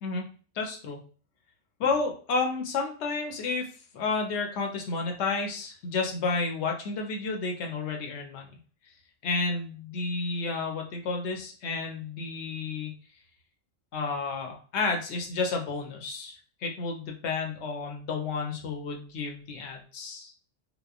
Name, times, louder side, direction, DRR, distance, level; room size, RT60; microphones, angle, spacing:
voice 1, 0.5-1.0 1.8-3.7 3.9-8.6 9.2-13.0 13.9-20.3, left 4 dB, 70° left, 2 dB, 0.9 m, -31 dB
2.9 x 2.0 x 2.3 m, 0.40 s
omnidirectional pair, 1.3 m